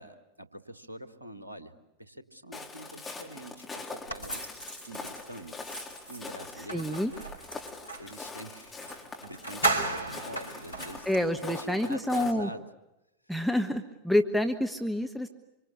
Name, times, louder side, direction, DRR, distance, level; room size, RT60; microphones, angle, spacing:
voice 1, 0.0-1.7 2.0-4.4 4.9-5.5 6.1-6.9 8.0-11.1 11.4-12.6, right 1 dB, 85° right, 9 dB, 1.8 m, -44 dB
Walk footsteps, 2.5-12.3, left 3 dB, 15° left, 3.8 m, -43 dB
sound 1, 4.1-8.1 8.8-8.9 9.2-11.3, right 3 dB, 85° left, 4.4 m, -35 dB
voice 2, 6.6-7.1 11.0-12.5 13.3-15.3, left 1 dB, ahead, 6 dB, 1.3 m, -28 dB
26.5 x 25.0 x 8.5 m, 0.93 s
figure-of-eight pair, 90°, 0 cm